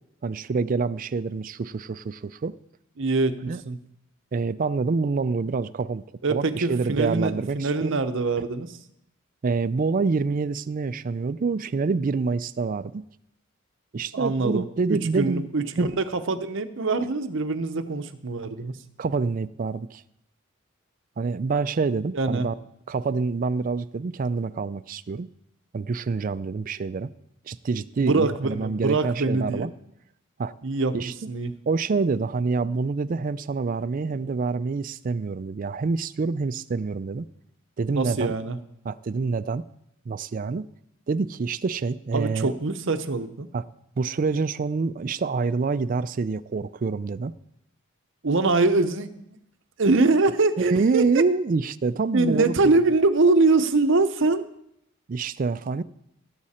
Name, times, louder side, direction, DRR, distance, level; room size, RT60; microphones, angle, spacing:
voice 1, 0.2-2.5 3.5-3.6 4.3-6.0 6.3-8.0 9.4-13.0 13.9-15.5 15.8-15.9 19.0-20.0 21.2-22.5 22.9-25.3 25.7-27.1 27.5-29.7 30.4-30.5 30.9-31.1 31.7-37.3 37.8-38.3 38.9-39.6 40.1-40.6 41.1-42.5 43.5-43.6 44.0-47.3 50.6-52.7 55.1-55.8, right 4 dB, 40° right, 14 dB, 0.4 m, -26 dB
voice 2, 3.0-3.8 6.2-8.8 14.1-18.8 22.1-22.5 28.0-29.7 30.6-31.5 37.9-38.6 42.1-43.5 48.2-49.4 49.8-51.2 52.1-54.4, right 3 dB, 60° right, 9 dB, 0.8 m, -24 dB
17.0 x 7.4 x 4.3 m, 0.77 s
head